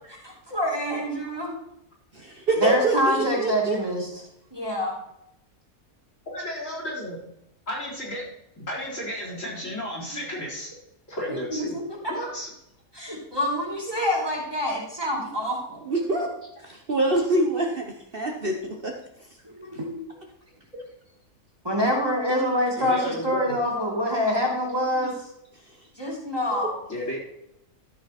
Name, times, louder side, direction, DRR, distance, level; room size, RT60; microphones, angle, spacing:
voice 1, 0.2-1.5 2.6-4.1 4.5-4.9 11.3-11.8 12.9-15.8 19.4-20.0 21.6-25.3 26.0-26.8, left 1 dB, 15° right, -3 dB, 2.6 m, -26 dB
voice 2, 2.1-3.8 13.9-14.1 15.9-16.3 16.6-17.9 18.1-18.9 19.7-19.8 26.5-26.7, right 2 dB, 40° right, 2 dB, 1.2 m, -25 dB
voice 3, 6.3-7.2 7.7-8.3 8.6-10.7 11.1-11.7 12.1-12.5 22.8-23.6 26.9-27.2, left 1 dB, 55° left, -4 dB, 4.3 m, -33 dB
13.0 x 6.5 x 4.3 m, 0.79 s
omnidirectional pair, 1.5 m